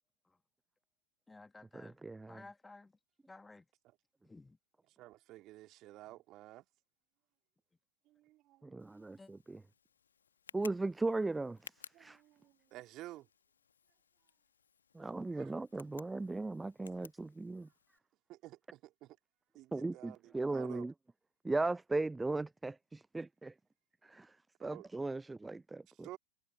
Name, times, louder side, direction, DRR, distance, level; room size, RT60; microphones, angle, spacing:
voice 1, 1.3-2.9 3.3-3.7 4.2-4.6 9.2-9.3, left 3 dB, 10° left, 1.6 m, -55 dB
voice 2, 1.8-2.4 8.6-9.6 10.5-12.2 14.9-17.7 19.7-20.9 21.4-23.5 24.0-26.1, right 3 dB, 10° right, 0.3 m, -37 dB
voice 3, 5.0-6.7 8.0-8.7 11.9-13.3 15.3-15.5 18.3-19.2 19.5-20.9 24.6-24.9 25.9-26.2, right 16 dB, 35° right, 2.9 m, -52 dB
Tick, 8.8-18.0, left 7 dB, 70° left, 1.4 m, -59 dB
figure-of-eight pair, 90°, 0 cm